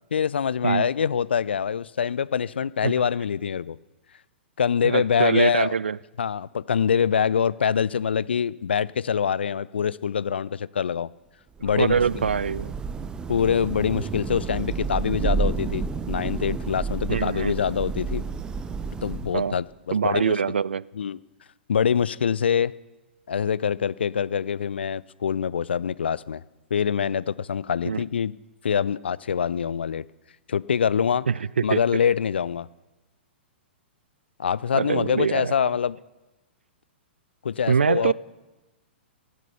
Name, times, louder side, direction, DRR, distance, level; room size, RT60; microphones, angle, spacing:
voice 1, 0.1-3.8 4.6-5.7 6.2-11.1 11.6-12.0 13.3-18.3 19.0-20.4 21.0-21.2 21.7-22.7 23.3-26.4 26.7-28.3 28.6-30.0 30.5-31.3 31.6-32.7 34.4-36.0 37.4-38.1, left 7 dB, 65° left, 0.4 m, -24 dB
voice 2, 4.8-6.0 11.7-12.7 17.1-17.5 19.3-19.6 19.9-20.8 27.8-28.0 31.3-32.0 34.7-35.7 37.7-38.1, right 6 dB, 70° right, 0.4 m, -24 dB
Thunder / Rain, 11.6-19.6, right 5 dB, 15° right, 0.7 m, -30 dB
17.5 x 9.8 x 6.8 m
figure-of-eight pair, 110°, 6 cm